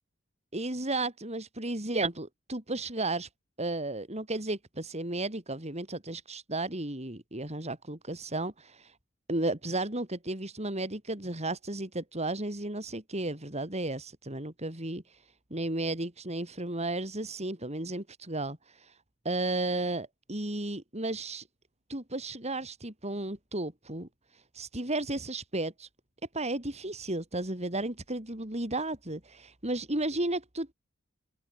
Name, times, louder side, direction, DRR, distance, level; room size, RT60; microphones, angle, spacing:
voice 1, 0.5-3.3 3.6-8.9 9.3-15.2 15.5-19.0 19.3-21.5 21.9-25.9 26.3-30.7, right 2 dB, 30° right, 5.3 m, -34 dB
open air
head